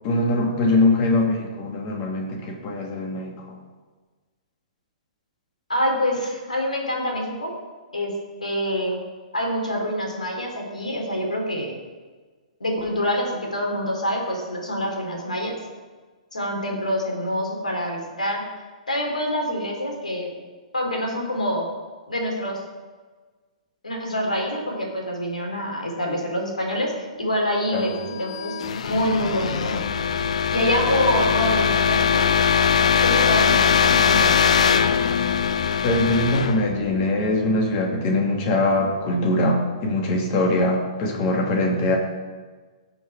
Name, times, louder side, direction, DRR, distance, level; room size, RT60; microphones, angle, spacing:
voice 1, 0.0-3.6 27.7-28.0 35.8-42.0, left 2 dB, 35° left, 1 dB, 2.6 m, -22 dB
voice 2, 5.7-7.5 7.9-8.1 8.4-9.0 9.3-11.7 12.6-15.6 16.3-18.4 18.9-20.3 20.7-21.6 22.1-22.6 23.8-26.9 27.2-28.5 28.8-29.8 30.5-32.3 33.0-34.3, equal, 80° left, 1 dB, 3.2 m, -26 dB
sound 1, 27.9-37.7, left 7 dB, 60° left, 0.6 m, -21 dB
16.5 x 6.0 x 4.8 m, 1.4 s
figure-of-eight pair, 115°, 4 cm